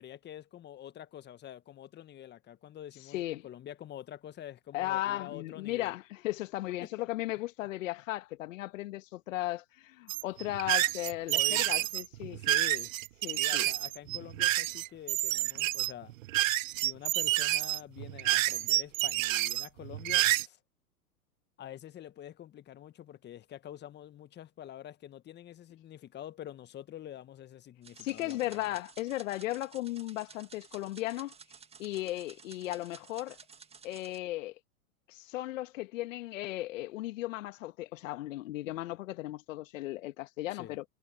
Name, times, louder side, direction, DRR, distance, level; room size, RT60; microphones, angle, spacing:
voice 1, 0.0-6.0 6.8-6.9 11.3-11.9 12.2-12.9 13.3-16.1 16.7-20.6 21.6-28.7 40.5-40.7, left 11 dB, 20° left, 1.6 m, -46 dB
voice 2, 3.1-3.5 4.7-12.4 13.2-13.7 28.0-31.3 31.8-33.4 33.8-34.6 35.1-40.8, left 16 dB, 55° left, 1.8 m, -36 dB
sound 1, 10.1-20.4, right 17 dB, 60° right, 0.5 m, -29 dB
Typing with drone, 27.8-34.2, right 6 dB, 15° right, 1.8 m, -54 dB
hypercardioid pair, 110°, 45 cm